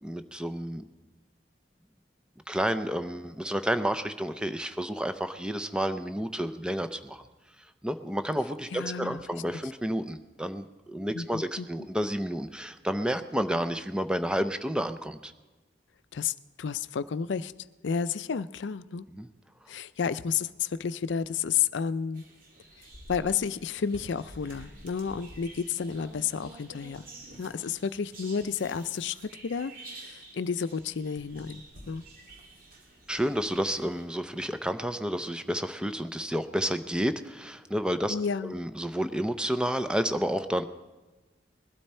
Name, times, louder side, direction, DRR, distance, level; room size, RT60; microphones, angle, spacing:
voice 1, 0.0-0.8 2.5-7.2 7.8-15.3 19.1-19.3 33.1-38.2 38.5-40.6, equal, 5° right, 10 dB, 0.5 m, -30 dB
voice 2, 8.7-9.2 11.1-11.7 16.1-17.5 17.8-19.1 19.7-22.2 23.1-27.1 27.4-29.7 30.0-32.0 38.1-38.6, left 6 dB, 70° left, 14 dB, 0.4 m, -31 dB
sound 1, 22.1-34.0, right 1 dB, 50° right, 2.6 m, -49 dB
20.5 x 12.0 x 4.3 m, 1.2 s
head